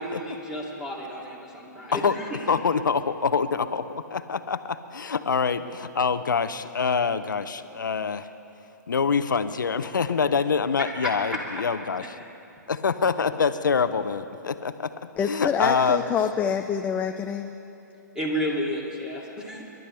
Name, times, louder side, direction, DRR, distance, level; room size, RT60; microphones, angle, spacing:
voice 1, 0.0-2.4 11.0-11.6 18.1-19.6, equal, 5° right, -3 dB, 2.7 m, -31 dB
voice 2, 2.5-8.3 8.9-12.1 12.7-14.9 15.3-16.1, left 5 dB, 85° left, 12 dB, 0.7 m, -25 dB
voice 3, 15.1-17.6, left 7 dB, 15° left, 5 dB, 0.4 m, -26 dB
27.5 x 12.0 x 3.4 m, 2.9 s
hypercardioid pair, 130°, 10 cm